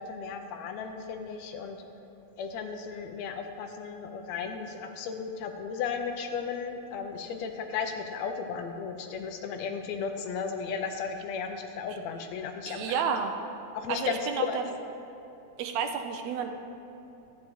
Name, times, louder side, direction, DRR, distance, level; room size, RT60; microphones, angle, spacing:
voice 1, 0.0-1.8 2.4-12.9 13.7-14.2 14.5-14.6, left 6 dB, 80° left, 5 dB, 1.7 m, -35 dB
voice 2, 12.7-13.3 13.9-14.6 15.6-16.5, right 6 dB, 80° right, 5 dB, 1.8 m, -30 dB
12.5 x 8.7 x 3.1 m, 2.9 s
omnidirectional pair, 3.4 m